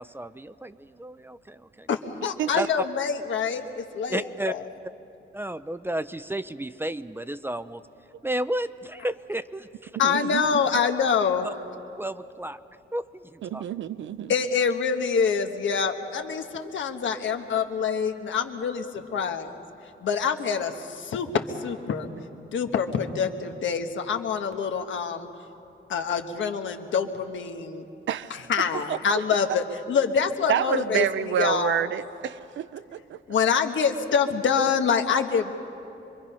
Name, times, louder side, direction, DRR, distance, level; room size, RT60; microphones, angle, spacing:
voice 1, 0.0-1.9 2.5-2.9 4.1-4.5 5.3-7.8 8.2-10.2 11.4-11.5 12.0-12.6 12.9-13.7, right 1 dB, 10° right, 13 dB, 0.4 m, -32 dB
voice 2, 1.9-4.6 10.0-11.5 14.3-19.6 20.0-22.1 22.4-25.3 25.9-27.8 28.3-31.8 33.3-35.5, left 6 dB, 75° left, 6 dB, 1.3 m, -26 dB
voice 3, 9.9-10.6 13.4-14.3 28.1-28.4 28.9-29.2 30.5-33.2, right 9 dB, 70° right, 14 dB, 0.6 m, -28 dB
25.5 x 23.5 x 5.6 m, 2.8 s
wide cardioid pair, 130°, 20 cm